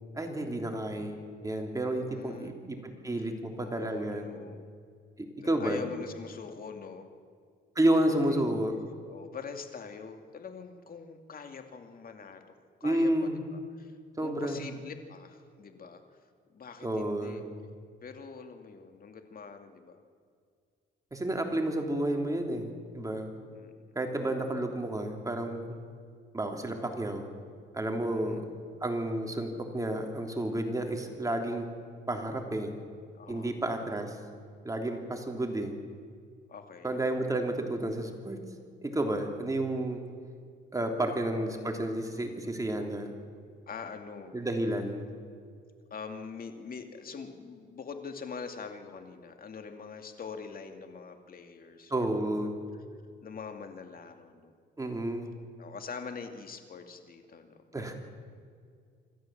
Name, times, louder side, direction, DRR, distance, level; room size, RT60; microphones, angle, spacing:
voice 1, 0.1-4.3 5.2-5.8 7.7-8.8 12.8-13.4 14.2-14.6 16.8-17.4 21.1-23.3 23.9-25.6 26.3-27.3 27.7-28.4 28.8-31.7 32.1-32.7 33.3-34.2 34.6-35.7 36.8-38.4 38.8-40.0 40.7-43.1 44.3-45.1 51.9-52.6 54.8-55.3 57.7-57.9, right 1 dB, 15° right, 3 dB, 3.2 m, -31 dB
voice 2, 1.9-2.5 3.6-4.7 5.6-7.1 8.3-8.4 9.1-12.5 12.8-16.0 16.5-17.4 18.0-20.0 23.5-24.0 28.1-28.4 33.2-33.6 36.5-37.0 41.0-41.8 43.7-44.3 45.9-52.5 53.2-54.5 55.6-57.9, left 5 dB, 45° left, 6 dB, 2.4 m, -44 dB
26.5 x 13.0 x 7.6 m, 2.1 s
cardioid pair, 90°, 20 cm